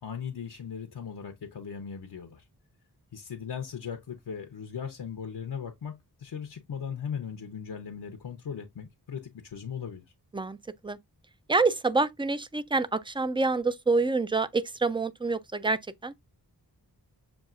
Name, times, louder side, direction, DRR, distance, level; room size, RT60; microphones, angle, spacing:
voice 1, 0.0-2.4 3.1-10.0, left 7 dB, 85° left, 0.8 m, -38 dB
voice 2, 11.5-16.1, right 3 dB, 15° right, 0.3 m, -27 dB
7.0 x 2.3 x 2.4 m
wide cardioid pair, 60°, 39 cm